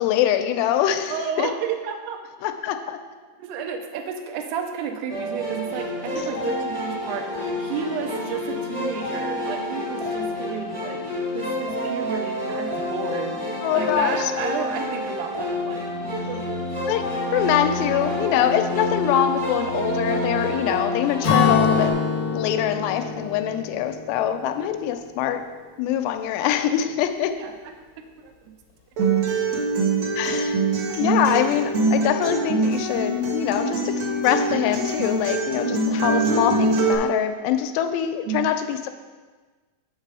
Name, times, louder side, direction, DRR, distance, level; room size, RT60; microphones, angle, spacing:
voice 1, 0.0-1.1 1.4-1.5 2.4-3.0 13.6-14.3 16.9-17.0 17.3-21.9 22.3-25.4 25.8-27.3 30.2-30.6 31.0-38.9, left 10 dB, 85° left, 8 dB, 2.7 m, -24 dB
voice 2, 1.1-2.2 3.4-11.0 11.3-15.9 16.3-16.4 17.8-18.5 26.4-26.5 26.9-27.0 27.3-27.7 28.2-28.3 35.6-36.4 38.3-38.5, right 7 dB, 80° right, 5 dB, 2.6 m, -31 dB
sound 1, 5.1-21.9, left 1 dB, 15° right, 0.8 m, -28 dB
Acoustic guitar / Strum, 21.2-24.9, left 6 dB, 65° left, 1.2 m, -24 dB
Acoustic guitar, 29.0-36.9, right 2 dB, 65° right, 1.7 m, -23 dB
6.6 x 6.3 x 4.8 m, 1.4 s
omnidirectional pair, 4.8 m